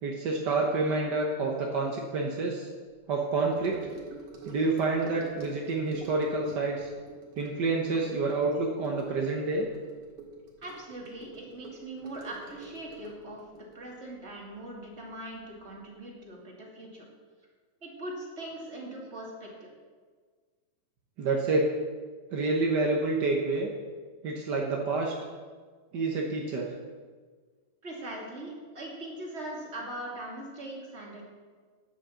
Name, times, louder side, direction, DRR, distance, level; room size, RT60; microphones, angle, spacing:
voice 1, 0.0-2.7 3.1-3.8 4.5-6.9 7.4-9.7 21.2-21.7 22.3-23.7 24.2-25.1 25.9-26.7, right 3 dB, 65° right, -1 dB, 1.0 m, -28 dB
Gurgling / Sink (filling or washing) / Trickle dribble, 3.5-15.1 15.4-15.7 16.0-16.1, right 3 dB, 80° right, 3.4 m, -46 dB
voice 2, 10.6-13.4 13.7-17.0 17.8-19.7 27.8-31.3, right 1 dB, 25° right, -3 dB, 2.4 m, -41 dB
10.5 x 8.2 x 7.1 m, 1.5 s
omnidirectional pair, 3.4 m